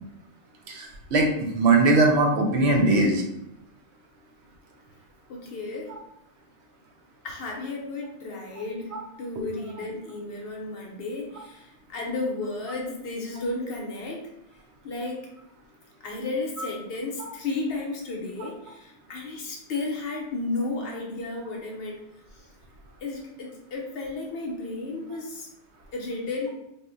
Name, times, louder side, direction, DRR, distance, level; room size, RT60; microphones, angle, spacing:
voice 1, 0.7-3.2, right 2 dB, 70° right, 2 dB, 0.8 m, -20 dB
voice 2, 5.3-5.9 7.2-14.3 14.8-15.2 16.0-22.0 22.3-22.5 23.0-25.5 25.9-26.5, left 3 dB, 60° left, 0 dB, 0.8 m, -33 dB
2.7 x 2.1 x 3.7 m, 0.83 s
omnidirectional pair, 1.2 m